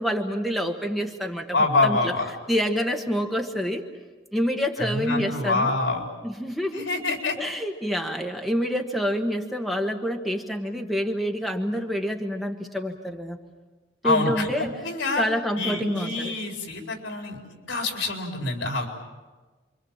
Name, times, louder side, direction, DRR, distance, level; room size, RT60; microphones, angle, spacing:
voice 1, 0.0-2.1 2.5-3.8 4.3-5.7 6.2-6.8 7.4-13.4 14.0-14.8 15.2-16.4, equal, ahead, 3 dB, 1.4 m, -27 dB
voice 2, 1.5-2.2 4.8-6.0 6.7-7.4 14.0-15.2 15.6-17.4 17.7-18.9, left 2 dB, 90° left, 2 dB, 4.6 m, -26 dB
28.0 x 24.5 x 7.5 m, 1.3 s
head